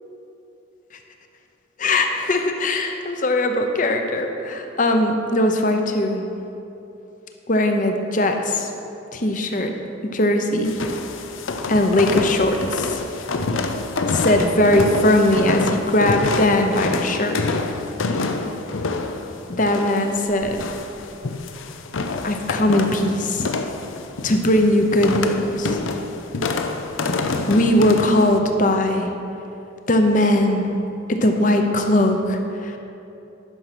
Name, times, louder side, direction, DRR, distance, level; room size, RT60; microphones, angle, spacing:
voice 1, 1.8-6.2 7.5-8.7 9.1-9.7 10.1-10.7 11.7-13.0 14.1-17.4 19.5-20.7 22.2-23.5 24.2-25.8 27.5-29.1 29.9-30.7 31.1-32.8, left 1 dB, 40° left, 5 dB, 0.7 m, -20 dB
sound 1, 10.6-28.4, left 3 dB, 80° left, 0.6 m, -27 dB
11.0 x 6.1 x 5.9 m, 2.9 s
head